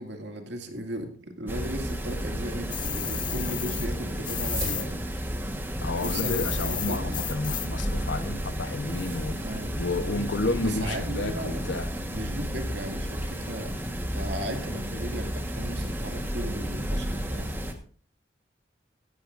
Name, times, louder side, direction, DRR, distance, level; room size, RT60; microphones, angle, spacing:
voice 1, 0.0-5.1 5.8-7.2 9.4-9.8 10.6-11.7 12.1-17.6, right 1 dB, 65° right, 4 dB, 2.3 m, -36 dB
sound 1, 1.5-17.7, equal, 10° right, 1.4 m, -32 dB
sound 2, 2.7-4.9 5.1-7.9, left 10 dB, 25° left, 0.6 m, -33 dB
sonido de cortina, 4.2-9.6, right 3 dB, 45° right, 3.3 m, -44 dB
voice 2, 5.8-9.4 9.8-11.9, left 2 dB, 70° left, 11 dB, 1.0 m, -31 dB
17.5 x 13.5 x 2.6 m, 0.43 s
head